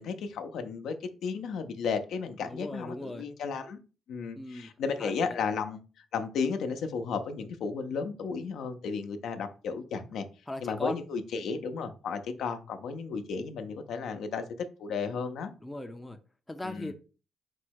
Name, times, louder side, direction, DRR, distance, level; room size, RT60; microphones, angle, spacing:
voice 1, 0.0-3.8 4.1-5.8 6.1-10.2 10.6-15.5 16.6-16.9, left 5 dB, 75° left, 0.5 m, -34 dB
voice 2, 2.4-3.3 4.3-4.7 5.0-5.4 10.5-11.0 15.6-16.2 16.5-16.9, left 1 dB, 15° left, 0.4 m, -38 dB
4.5 x 2.1 x 4.5 m
cardioid pair, 90°, 0 cm